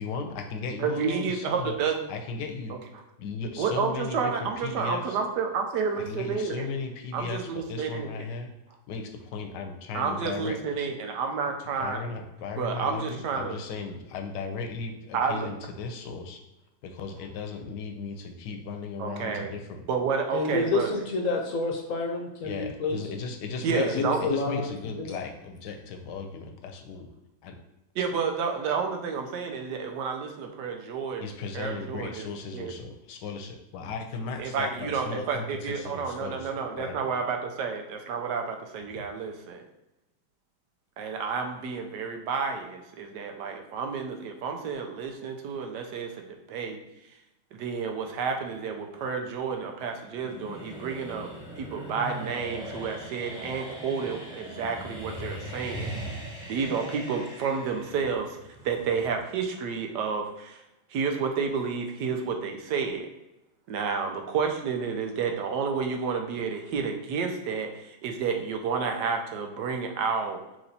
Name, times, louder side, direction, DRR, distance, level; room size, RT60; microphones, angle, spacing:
voice 1, 0.0-1.7 2.1-2.8 3.2-5.2 6.0-8.5 8.9-10.6 11.8-16.4 16.8-19.8 22.4-27.1 27.4-27.6 31.2-36.9 38.9-39.1, left 4 dB, 85° left, 4 dB, 1.3 m, -36 dB
voice 2, 0.8-2.0 3.6-6.7 7.1-8.1 9.9-12.0 12.6-13.6 15.1-15.5 19.0-19.5 19.9-21.0 23.6-24.2 28.0-32.3 32.5-32.7 34.4-39.6 41.0-46.8 47.6-51.3 51.6-55.9 56.5-58.4 58.6-60.6 60.9-63.1 63.7-70.4, right 5 dB, 85° right, 4 dB, 1.3 m, -30 dB
voice 3, 20.3-23.0 23.7-25.2, left 3 dB, 60° left, 2 dB, 0.9 m, -29 dB
sound 1, 48.4-59.2, equal, 5° right, 0.7 m, -40 dB
6.1 x 3.0 x 2.7 m, 0.94 s
omnidirectional pair, 1.8 m